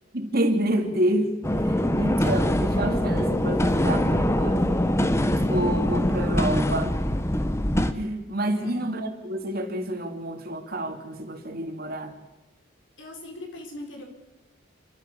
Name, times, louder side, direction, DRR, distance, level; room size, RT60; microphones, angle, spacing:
voice 1, 0.1-4.8 5.4-6.9 7.9-12.1, right 1 dB, 50° right, 4 dB, 3.0 m, -28 dB
sound 1, 1.4-7.9, left 1 dB, 15° left, 1.2 m, -23 dB
voice 2, 8.5-8.9 13.0-14.0, left 1 dB, 75° left, 3 dB, 5.1 m, -40 dB
29.0 x 13.0 x 7.1 m, 1.0 s
head